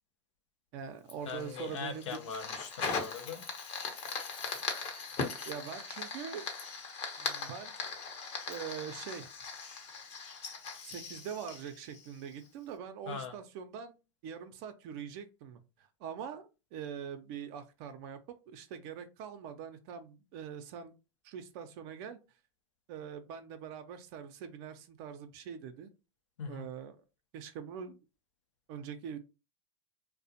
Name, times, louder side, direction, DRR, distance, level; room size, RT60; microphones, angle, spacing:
voice 1, 0.7-2.2 5.4-6.5 7.2-7.7 8.5-9.3 10.8-14.0 14.2-18.2 18.5-20.9 21.2-22.2 22.9-25.9 26.5-26.9 27.3-28.0 28.7-29.2, right 8 dB, 55° right, 0.5 m, -43 dB
Fire, 1.1-12.5, left 5 dB, 40° left, 0.7 m, -40 dB
voice 2, 1.3-3.5 13.1-13.4 26.4-26.7, left 5 dB, 85° left, 0.6 m, -41 dB
2.4 x 2.0 x 2.7 m
hypercardioid pair, 100°, 16 cm